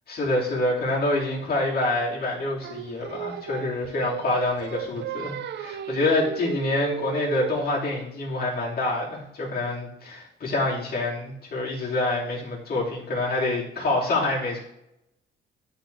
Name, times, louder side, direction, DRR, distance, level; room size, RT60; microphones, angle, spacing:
voice 1, 0.1-14.6, left 2 dB, 50° left, -5 dB, 2.7 m, -26 dB
Singing, 2.6-7.8, right 9 dB, 60° right, 0.4 m, -34 dB
11.0 x 3.9 x 3.4 m, 0.84 s
cardioid pair, 115°, 21 cm